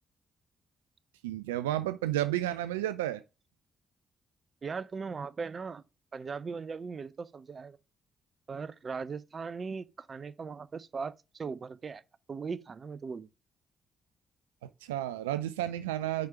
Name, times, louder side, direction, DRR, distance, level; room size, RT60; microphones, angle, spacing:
voice 1, 1.2-3.2 14.6-16.3, right 13 dB, 90° right, 0.3 m, -32 dB
voice 2, 4.6-5.8 6.1-7.8 8.5-12.0 12.3-13.3, right 5 dB, 45° right, 0.6 m, -39 dB
6.3 x 5.1 x 5.9 m
hypercardioid pair, 45°, 0 cm